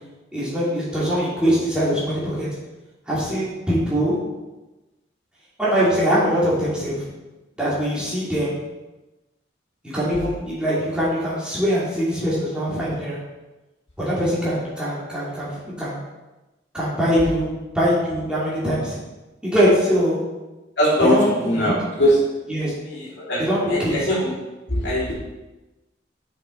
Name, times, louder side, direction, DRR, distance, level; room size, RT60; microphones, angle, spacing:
voice 1, 0.3-2.5 3.1-4.2 5.6-7.0 7.6-8.6 9.9-13.2 14.0-16.0 16.7-19.0 19.4-20.2 21.1-21.7 22.5-22.7 23.4-24.1, equal, 5° right, -10 dB, 2.5 m, -22 dB
voice 2, 20.8-22.1 23.3-23.4 23.7-24.3 24.7-25.1, equal, 65° left, -7 dB, 2.9 m, -20 dB
7.5 x 5.5 x 4.5 m, 1.1 s
head